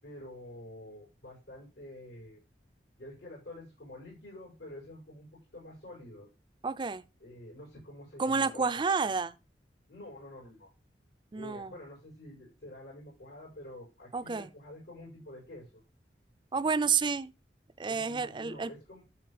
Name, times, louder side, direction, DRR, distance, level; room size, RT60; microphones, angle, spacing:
voice 1, 0.0-2.4 3.0-5.3 5.5-6.3 7.2-8.8 9.9-10.7 11.3-15.8 17.9-19.0, left 1 dB, 85° left, 5.9 m, -48 dB
voice 2, 6.6-7.0 8.2-9.3 11.3-11.7 14.1-14.5 16.5-17.3 17.8-18.7, right 5 dB, 25° right, 0.4 m, -30 dB
12.0 x 4.2 x 4.9 m
head